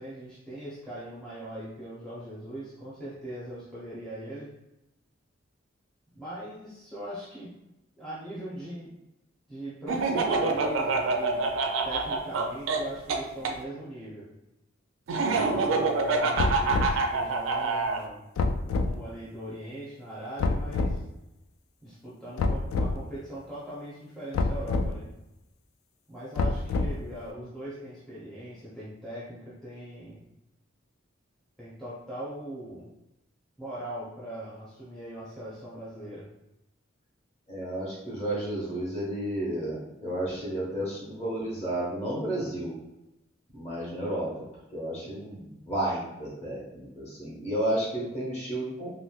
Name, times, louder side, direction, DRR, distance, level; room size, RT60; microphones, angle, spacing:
voice 1, 0.0-4.5 6.1-7.6 8.0-8.9 9.5-11.5 11.8-14.3 15.2-18.2 18.7-21.0 21.8-25.1 26.1-30.3 31.6-32.9 33.6-36.3, right 1 dB, ahead, -10 dB, 0.6 m, -40 dB
Laughter, 9.9-13.5 15.1-18.0, right 3 dB, 80° right, 0.4 m, -26 dB
sound 1, 16.4-17.0 18.4-18.9 20.4-21.0 22.4-23.0 24.3-24.9 26.4-27.1, left 3 dB, 85° left, 0.3 m, -27 dB
voice 2, 37.5-42.7 43.5-44.3 44.7-48.9, right 1 dB, 30° left, -7 dB, 1.2 m, -32 dB
3.0 x 2.9 x 2.3 m, 0.93 s
head